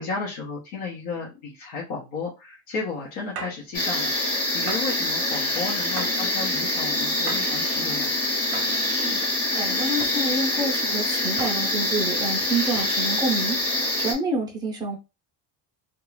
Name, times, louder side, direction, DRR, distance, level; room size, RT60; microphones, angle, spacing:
voice 1, 0.0-8.1, left 4 dB, 65° left, 0.9 m, -33 dB
sound 1, 3.3-3.7 4.7-5.0 6.0-6.3 7.3-7.6 8.5-8.8 10.0-10.3 11.4-11.8 12.8-13.1, right 5 dB, 55° right, 0.7 m, -37 dB
sound 2, 3.7-14.1, left 1 dB, 30° left, 1.0 m, -25 dB
voice 2, 9.6-15.0, right 2 dB, 10° right, 0.6 m, -28 dB
2.4 x 2.3 x 3.1 m
cardioid pair, 175°, 48 cm